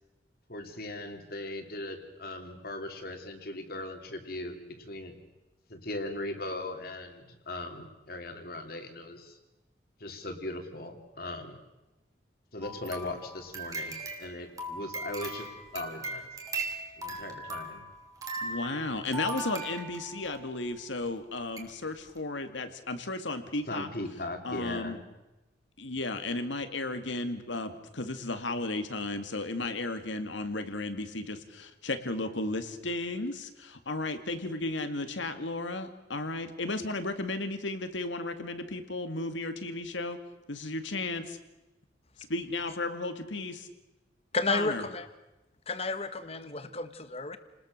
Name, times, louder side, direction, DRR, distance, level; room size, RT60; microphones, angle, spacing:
voice 1, 0.5-5.1 5.7-9.4 10.0-11.6 12.5-15.5 15.7-16.3 17.0-17.9 23.7-25.0, left 2 dB, 50° left, 5 dB, 3.0 m, -39 dB
sound 1, 12.6-20.4 21.1-21.2 21.6-21.7 22.1-22.2, right 2 dB, 20° right, 2.8 m, -39 dB
voice 2, 18.4-23.9 24.4-25.0 25.8-40.2 40.5-41.4 42.3-43.7 44.5-44.8, left 2 dB, 80° left, 8 dB, 2.2 m, -34 dB
voice 3, 44.3-45.1 45.7-47.4, left 3 dB, 35° left, 11 dB, 1.4 m, -32 dB
30.0 x 20.0 x 6.6 m, 1.0 s
head